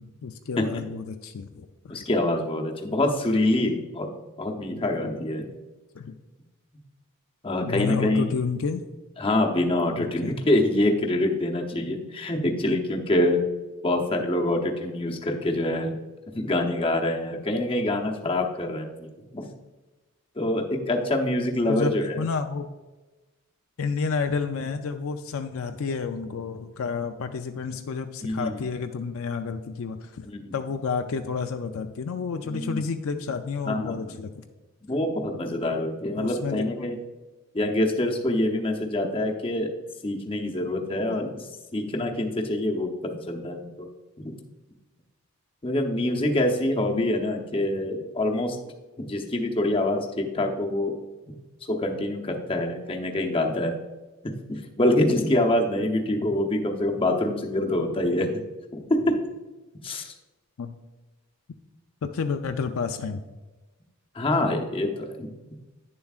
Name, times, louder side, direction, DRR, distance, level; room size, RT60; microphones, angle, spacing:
voice 1, 0.0-2.0 6.0-6.1 7.7-8.8 10.0-10.4 21.7-22.7 23.8-30.3 30.5-34.3 36.2-36.7 46.9-47.0 60.6-60.7 62.0-63.2, left 5 dB, 65° left, 6 dB, 0.4 m, -30 dB
voice 2, 1.9-4.1 4.4-5.5 7.4-8.2 9.2-13.4 13.8-15.9 16.4-19.5 20.4-22.2 28.2-28.6 30.2-30.5 32.5-32.9 33.7-34.1 34.9-37.0 37.5-39.7 40.0-41.3 41.7-43.9 44.2-44.3 45.6-48.6 49.0-51.0 51.7-53.7 54.2-58.3 58.7-59.2 59.8-60.1 64.1-65.5, left 1 dB, 25° left, 2 dB, 0.8 m, -25 dB
9.7 x 7.0 x 2.4 m, 1.2 s
head